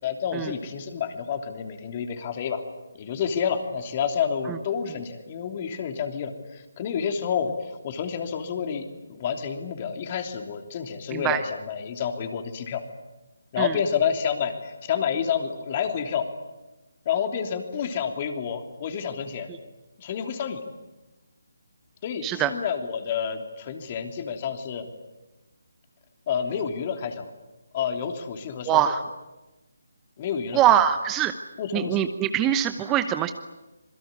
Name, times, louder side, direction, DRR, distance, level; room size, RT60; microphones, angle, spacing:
voice 1, 0.0-2.6 3.0-8.8 9.1-12.8 13.5-16.2 17.0-19.5 20.0-20.6 22.0-24.8 26.3-27.3 27.7-28.8 30.2-30.6 31.6-32.1, left 7 dB, 30° left, 6 dB, 3.3 m, -29 dB
voice 2, 28.7-29.0 30.5-31.3 31.7-33.3, right 11 dB, 15° right, 10 dB, 0.9 m, -23 dB
26.5 x 22.5 x 9.7 m, 1.1 s
figure-of-eight pair, 150°, 0 cm